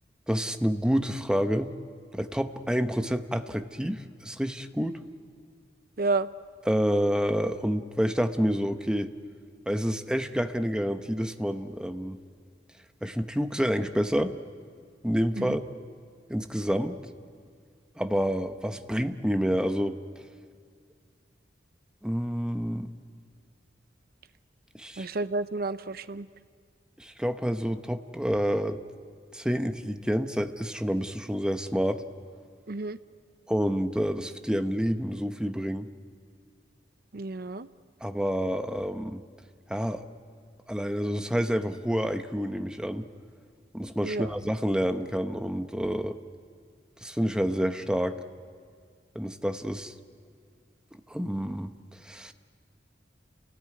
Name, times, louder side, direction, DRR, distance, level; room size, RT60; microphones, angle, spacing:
voice 1, 0.3-1.7 2.1-5.0 6.7-9.1 9.7-12.2 13.0-14.3 15.0-15.6 16.3-17.0 18.0-20.0 22.0-22.9 24.7-25.1 27.0-28.8 29.3-32.0 33.5-35.9 38.0-39.2 39.7-40.0 40.7-43.0 43.7-46.2 47.0-48.2 49.1-49.9 51.1-51.7 52.0-52.3, equal, 5° right, 8 dB, 0.9 m, -28 dB
voice 2, 6.0-6.3 15.4-15.5 25.0-26.3 32.7-33.0 37.1-37.7 44.0-44.3, right 3 dB, 55° right, 13 dB, 0.7 m, -30 dB
29.0 x 18.5 x 9.6 m, 2.1 s
head